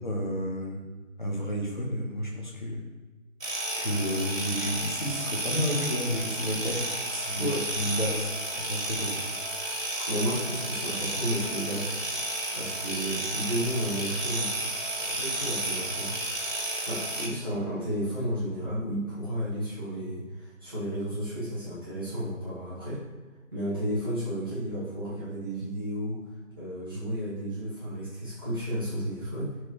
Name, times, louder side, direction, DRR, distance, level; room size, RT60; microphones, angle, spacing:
voice 1, 0.0-0.8 1.2-2.8 3.8-6.8 7.1-9.2, equal, 35° left, -1 dB, 1.3 m, -31 dB
sound 1, 3.4-17.3, right 1 dB, 75° right, 2.1 m, -32 dB
voice 2, 10.1-11.9 12.5-14.5 15.0-16.1 16.8-23.0 23.5-26.2 26.6-29.5, equal, 15° right, -12 dB, 1.8 m, -32 dB
11.5 x 4.7 x 3.2 m, 1.3 s
figure-of-eight pair, 175°, 40 cm